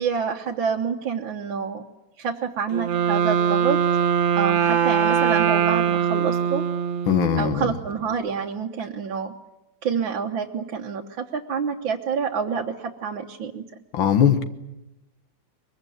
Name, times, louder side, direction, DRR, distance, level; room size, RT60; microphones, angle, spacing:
voice 1, 0.0-1.8 2.2-3.8 4.4-6.6 7.4-9.3 9.8-13.6, right 6 dB, 80° right, 0 dB, 1.9 m, -27 dB
Wind instrument woodwind instrument, 2.7-7.6, right 8 dB, 45° right, 1.2 m, -22 dB
voice 2, 7.1-7.7 13.9-14.4, left 8 dB, 90° left, 9 dB, 2.2 m, -20 dB
23.0 x 22.0 x 9.2 m, 0.95 s
omnidirectional pair, 2.1 m